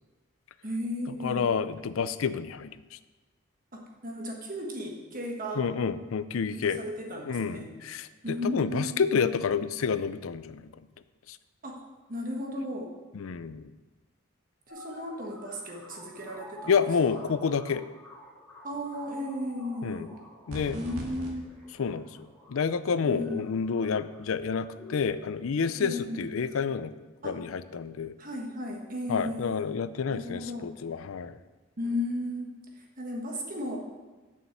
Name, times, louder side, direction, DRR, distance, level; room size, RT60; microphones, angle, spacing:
voice 1, 0.6-1.6 3.7-5.6 6.5-7.7 8.2-9.0 11.6-11.8 12.1-12.9 14.7-16.7 17.1-17.3 18.6-20.2 20.7-21.6 23.0-23.5 25.8-26.3 27.2-27.4 28.2-29.7 30.1-30.8 31.8-33.8, left 1 dB, 40° right, 0 dB, 1.4 m, -35 dB
voice 2, 1.2-2.8 5.6-6.8 7.3-10.7 13.1-13.7 16.7-17.8 19.8-20.1 20.5-20.8 21.8-22.1 22.5-26.9 27.2-28.1 29.1-31.4, left 6 dB, 80° left, 14 dB, 0.4 m, -29 dB
sound 1, 14.7-25.0, equal, 5° left, 2.8 m, -49 dB
sound 2, 20.5-21.3, equal, 80° right, 2.2 m, -38 dB
7.4 x 6.6 x 6.9 m, 1.2 s
head